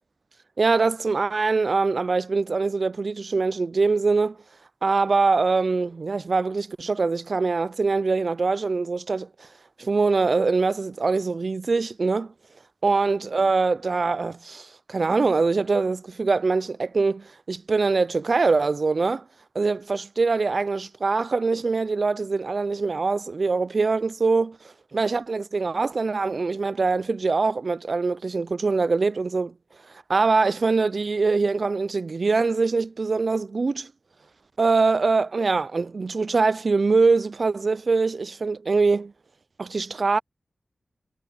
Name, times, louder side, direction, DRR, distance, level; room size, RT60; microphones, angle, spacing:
voice 1, 0.6-4.4 4.8-9.5 9.8-12.3 12.8-19.2 19.6-24.6 24.9-29.5 30.1-33.9 34.6-39.1 39.6-40.2, right 4 dB, 55° right, 0.3 m, -23 dB
wide cardioid pair, 80°, 0 cm